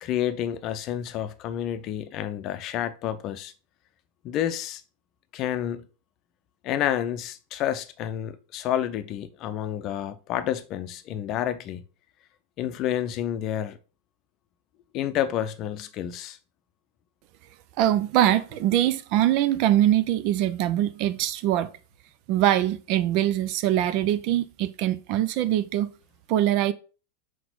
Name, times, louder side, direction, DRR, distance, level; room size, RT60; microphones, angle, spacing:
voice 1, 0.0-3.5 4.2-4.8 5.3-5.8 6.6-11.8 12.6-13.8 14.9-16.4, left 11 dB, 35° left, 0.6 m, -29 dB
voice 2, 17.8-21.7 22.3-25.9 26.3-26.7, right 12 dB, 45° right, 0.5 m, -23 dB
5.9 x 4.7 x 3.9 m
figure-of-eight pair, 90°, 0 cm